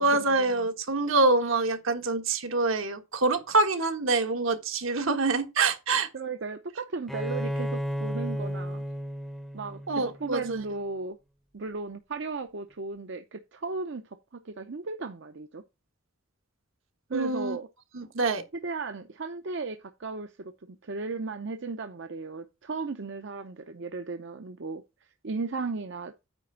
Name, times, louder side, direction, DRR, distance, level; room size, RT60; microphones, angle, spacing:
voice 1, 0.0-6.1 9.9-10.4 17.1-17.6 17.9-18.4, right 3 dB, 75° right, 1.4 m, -25 dB
voice 2, 6.1-8.8 9.5-11.2 11.5-14.0 14.4-15.6 17.1-17.7 18.5-24.8 25.2-26.1, right 4 dB, 60° right, 0.7 m, -35 dB
Bowed string instrument, 7.1-10.7, equal, ahead, 0.6 m, -33 dB
9.1 x 3.4 x 6.7 m
head